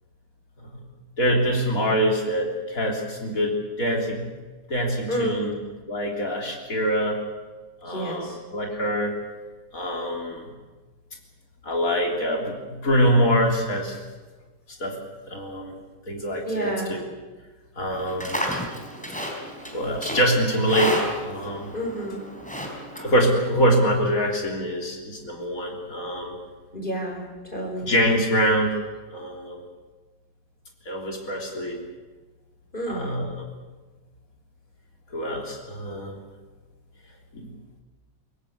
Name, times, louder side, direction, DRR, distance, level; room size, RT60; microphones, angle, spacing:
voice 1, 1.2-3.5 3.8-4.3 4.7-5.5 5.9-7.2 7.8-9.1 9.7-10.5 11.6-14.0 14.8-15.0 15.3-15.7 16.1-17.0 17.8-18.4 19.7-21.7 23.0-26.4 27.8-28.8 29.1-29.6 30.9-31.8 32.9-33.4 35.1-36.2 37.3-37.5, equal, 50° left, 1 dB, 3.9 m, -24 dB
voice 2, 5.1-5.6 7.8-8.4 16.4-16.9 21.7-22.2 26.7-27.9 32.7-33.1, right 1 dB, 30° left, 1 dB, 5.1 m, -30 dB
Livestock farm animals working animals, 17.9-23.6, equal, 5° left, 3.6 m, -32 dB
23.0 x 17.5 x 8.6 m, 1.3 s
omnidirectional pair, 1.9 m